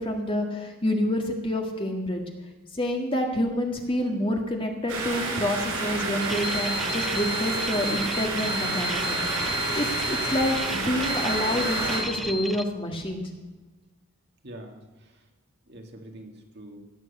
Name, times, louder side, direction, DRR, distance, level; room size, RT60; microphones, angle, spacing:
voice 1, 0.0-2.2 2.7-9.2 9.8-13.3, left 1 dB, 25° left, 2 dB, 1.8 m, -28 dB
sound 1, 4.9-12.0, right 3 dB, 85° right, 5.7 m, -29 dB
sound 2, 6.2-12.6, left 2 dB, ahead, 0.5 m, -33 dB
voice 2, 14.4-15.2 15.7-16.8, right 1 dB, 50° right, 3 dB, 2.1 m, -44 dB
17.0 x 7.7 x 8.1 m, 1.3 s
head